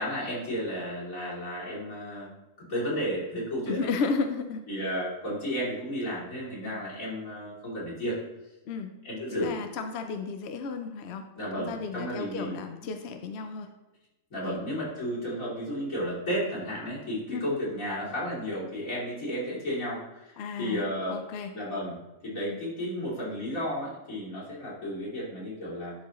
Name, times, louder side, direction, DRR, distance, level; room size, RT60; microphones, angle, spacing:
voice 1, 0.0-2.3 2.6-3.9 4.7-8.2 9.0-9.5 11.4-12.5 14.3-21.2 21.5-22.0 22.2-25.9, equal, 80° left, -8 dB, 3.3 m, -33 dB
voice 2, 3.7-4.6 6.6-6.8 8.7-8.9 9.3-11.2 11.6-13.7 14.4-14.6 17.3-17.5 20.4-21.5 22.5-22.6, left 4 dB, 60° left, 6 dB, 0.8 m, -33 dB
11.5 x 4.7 x 3.0 m, 1.0 s
omnidirectional pair, 1.4 m